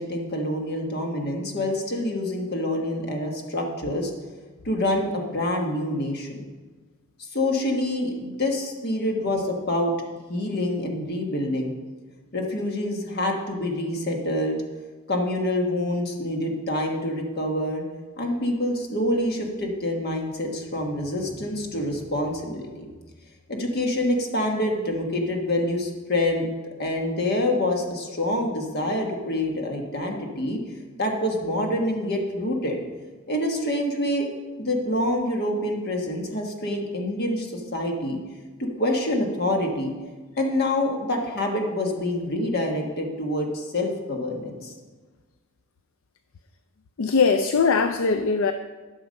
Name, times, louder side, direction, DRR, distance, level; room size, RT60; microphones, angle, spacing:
voice 1, 0.0-4.1 4.6-6.4 7.2-9.9 10.3-11.7 12.3-14.6 15.1-17.8 18.2-22.9 23.5-26.5 26.8-30.6 31.0-32.8 33.3-34.3 34.6-38.2 38.6-39.9 40.4-44.7, left 1 dB, 45° left, 2 dB, 1.4 m, -26 dB
voice 2, 47.0-48.5, left 5 dB, 65° left, 8 dB, 0.4 m, -21 dB
12.0 x 6.1 x 5.2 m, 1.3 s
head